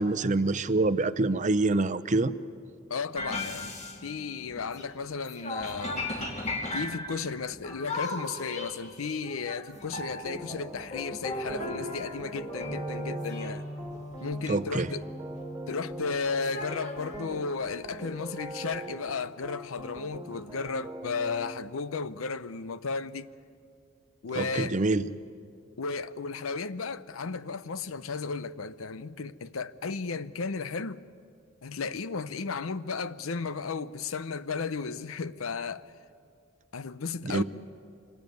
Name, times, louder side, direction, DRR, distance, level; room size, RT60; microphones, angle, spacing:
voice 1, 0.0-2.3 14.5-14.9 24.3-25.1 37.2-37.4, right 2 dB, 35° right, 0.7 m, -26 dB
voice 2, 2.9-3.8 4.0-6.0 6.7-13.6 14.2-15.0 15.7-23.3 24.2-24.8 25.8-31.0 31.6-35.9 36.7-37.4, left 4 dB, 85° left, 0.7 m, -34 dB
sound 1, 3.1-4.9 5.2-17.3 18.0-18.1 18.5-18.9, left 1 dB, 35° left, 2.5 m, -38 dB
sound 2, 10.2-21.5, right 1 dB, 10° right, 1.8 m, -42 dB
26.0 x 19.5 x 9.3 m
head